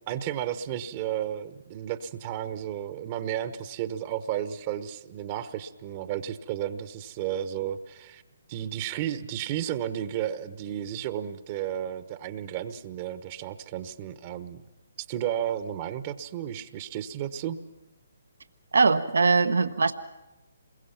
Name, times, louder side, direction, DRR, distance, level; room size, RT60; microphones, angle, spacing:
voice 1, 0.1-8.2 8.5-14.6 15.0-17.6, right 10 dB, 35° right, 11 dB, 1.1 m, -33 dB
voice 2, 18.7-19.9, right 4 dB, 75° right, 10 dB, 1.1 m, -21 dB
27.5 x 22.0 x 5.9 m, 1.0 s
figure-of-eight pair, 145°, 0 cm